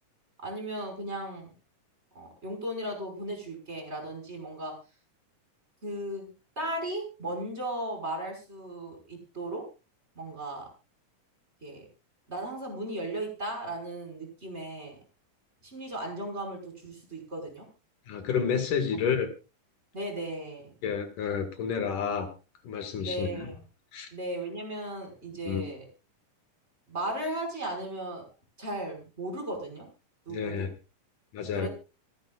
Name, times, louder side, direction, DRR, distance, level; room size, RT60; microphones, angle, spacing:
voice 1, 0.4-1.5 2.1-4.7 5.8-9.6 10.2-10.7 11.6-11.8 12.3-15.0 15.6-17.7 19.9-20.7 23.0-23.6 24.1-25.8 26.9-28.3 28.6-29.9 30.3-30.7 31.5-31.7, right 1 dB, 20° right, 2 dB, 5.7 m, -36 dB
voice 2, 18.1-19.3 20.8-22.3 22.6-23.5 23.9-24.1 25.5-25.6 30.3-30.7 31.3-31.7, left 7 dB, 70° left, 7 dB, 3.4 m, -30 dB
27.0 x 10.5 x 2.4 m, 0.31 s
omnidirectional pair, 3.8 m